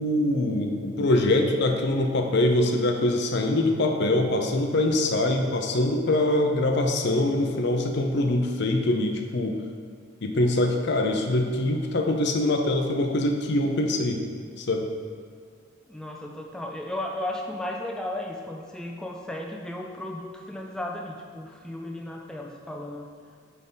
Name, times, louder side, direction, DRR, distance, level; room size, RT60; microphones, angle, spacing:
voice 1, 0.0-9.6 10.2-14.2 14.6-14.9, left 1 dB, 60° left, 4 dB, 0.6 m, -24 dB
voice 2, 15.9-23.1, left 1 dB, 5° left, 0 dB, 0.4 m, -35 dB
9.2 x 3.6 x 4.0 m, 2.2 s
head